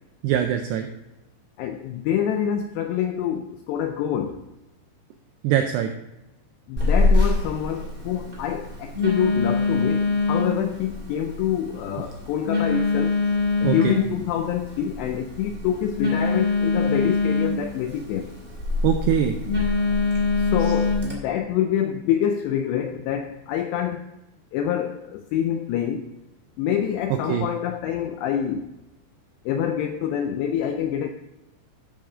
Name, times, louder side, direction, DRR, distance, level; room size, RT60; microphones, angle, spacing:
voice 1, 0.2-0.9 5.4-5.9 13.6-14.0 18.8-19.3 20.6-20.7 27.3-27.5, right 9 dB, 85° right, 5 dB, 2.4 m, -22 dB
voice 2, 1.6-4.4 6.7-13.2 13.6-18.3 20.4-24.0 24.5-26.1 26.6-28.7 29.5-31.1, left 9 dB, 85° left, 6 dB, 2.4 m, -26 dB
Telephone, 6.8-21.1, left 3 dB, 30° right, 1.0 m, -24 dB
12.5 x 6.5 x 3.7 m, 0.96 s
omnidirectional pair, 5.5 m